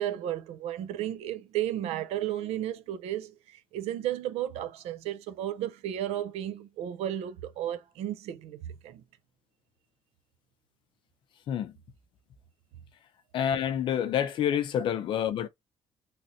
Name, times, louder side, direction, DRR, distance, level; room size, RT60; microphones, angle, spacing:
voice 1, 0.0-9.0, right 12 dB, 75° right, 0.5 m, -33 dB
voice 2, 13.3-15.5, left 9 dB, 50° left, 0.4 m, -28 dB
3.2 x 2.5 x 2.7 m
cardioid pair, 175°, 11 cm